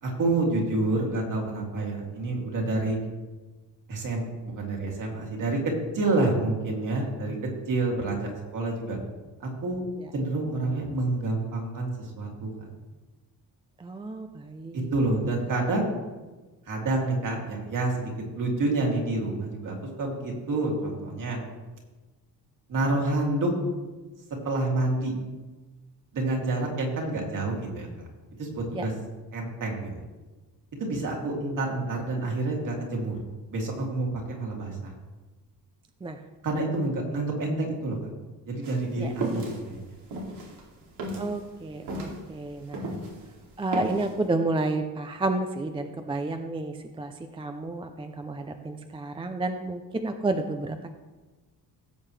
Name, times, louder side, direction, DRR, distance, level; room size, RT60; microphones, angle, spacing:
voice 1, 0.0-3.0 3.9-7.4 7.7-9.0 9.4-9.8 10.1-12.5 14.7-15.9 16.7-21.4 22.7-23.5 24.4-25.1 26.1-28.1 28.4-28.9 29.3-30.0 30.8-33.2 33.5-34.9 36.4-38.0 38.5-39.8, right 2 dB, 50° right, -1 dB, 2.6 m, -28 dB
voice 2, 13.8-14.9 28.7-28.8 36.0-36.2 39.0-39.1 41.1-42.9 43.6-50.9, right 2 dB, 15° right, 7 dB, 0.4 m, -31 dB
sound 1, 38.6-43.2 43.5-44.1, right 2 dB, 80° right, 2.6 m, -34 dB
16.5 x 7.7 x 3.2 m, 1.2 s
cardioid pair, 160°, 40 cm